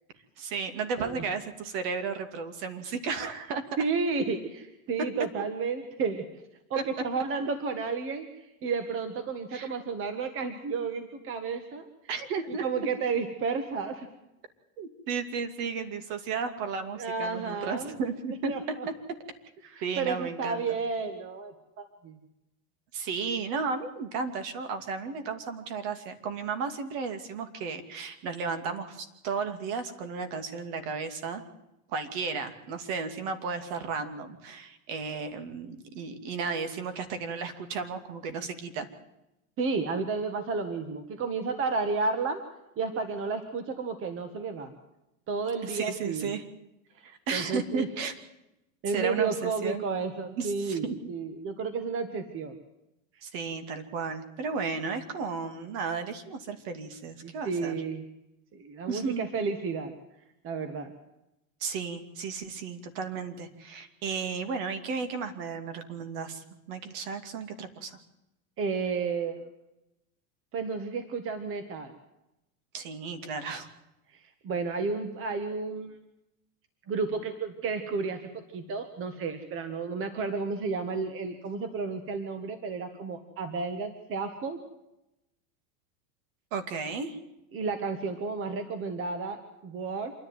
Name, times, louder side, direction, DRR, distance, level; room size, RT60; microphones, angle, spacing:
voice 1, 0.4-3.6 9.5-9.7 12.1-12.6 14.8-18.5 19.8-20.6 22.9-31.4 31.9-38.9 45.6-46.4 47.0-48.1 48.9-49.8 50.4-51.0 53.2-57.7 58.9-59.3 61.6-68.0 72.7-73.7 86.5-87.2, right 5 dB, 50° right, 9 dB, 2.7 m, -34 dB
voice 2, 3.8-6.2 6.7-8.3 8.6-11.9 12.6-14.1 16.9-17.9 18.5-18.9 19.6-22.2 39.6-42.4 42.8-44.7 45.3-46.3 47.3-47.9 48.8-52.6 57.2-58.0 58.5-59.9 60.4-60.9 68.6-69.3 70.5-71.9 74.4-75.9 76.9-78.2 78.5-84.6 87.5-90.1, right 4 dB, 30° right, 9 dB, 1.7 m, -32 dB
27.0 x 11.0 x 9.5 m, 0.90 s
supercardioid pair, 140°, 43 cm